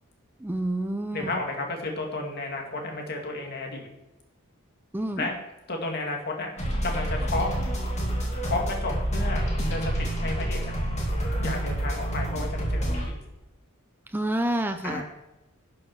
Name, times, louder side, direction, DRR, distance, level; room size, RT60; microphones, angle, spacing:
voice 1, 0.4-1.4 4.9-5.3 14.1-15.0, right 1 dB, 10° right, 7 dB, 0.5 m, -28 dB
voice 2, 1.1-3.9 5.2-5.4 5.7-6.6 6.8-7.5 8.4-10.7 11.4-13.2 14.8-15.0, left 2 dB, 50° left, 1 dB, 2.4 m, -32 dB
sound 1, 6.6-13.1, right 1 dB, 30° left, 2.6 m, -28 dB
11.5 x 6.4 x 6.2 m, 1.0 s
head